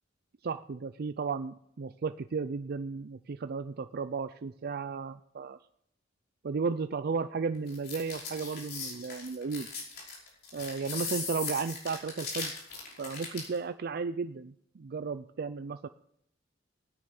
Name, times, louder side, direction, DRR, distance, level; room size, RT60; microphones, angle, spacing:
voice 1, 0.4-5.6 6.4-9.7 10.5-12.5 13.0-15.9, right 5 dB, 55° right, 11 dB, 0.4 m, -34 dB
sound 1, 7.7-13.6, left 4 dB, 55° left, 5.3 m, -38 dB
16.5 x 9.9 x 5.9 m, 0.72 s
head